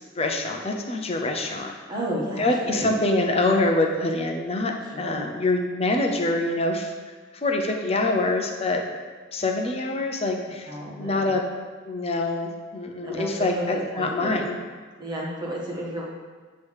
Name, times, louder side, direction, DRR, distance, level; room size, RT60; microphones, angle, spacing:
voice 1, 0.2-1.7 2.4-6.9 7.4-8.8 9.3-10.7 11.0-11.4 11.9-14.6, left 2 dB, 30° left, 2 dB, 0.8 m, -25 dB
voice 2, 1.6-2.9 4.8-5.3 10.6-11.3 13.0-14.4 15.0-16.0, right 1 dB, 20° right, -4 dB, 1.5 m, -32 dB
9.2 x 3.2 x 6.5 m, 1.5 s
head